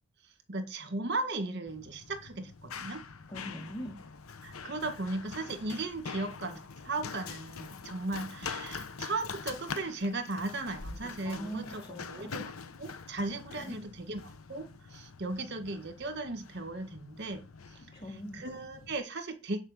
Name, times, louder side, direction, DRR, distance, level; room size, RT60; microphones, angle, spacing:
voice 1, 0.5-3.0 4.4-12.4 12.8-17.4 17.7-17.8 18.3-19.6, right 2 dB, 50° right, 8 dB, 1.7 m, -36 dB
Run, 1.7-19.0, left 5 dB, 80° left, 0.9 m, -44 dB
voice 2, 3.3-4.0 11.2-12.3 13.6-13.7 17.9-18.4, equal, 25° left, -1 dB, 1.9 m, -41 dB
9.8 x 4.9 x 7.5 m, 0.29 s
head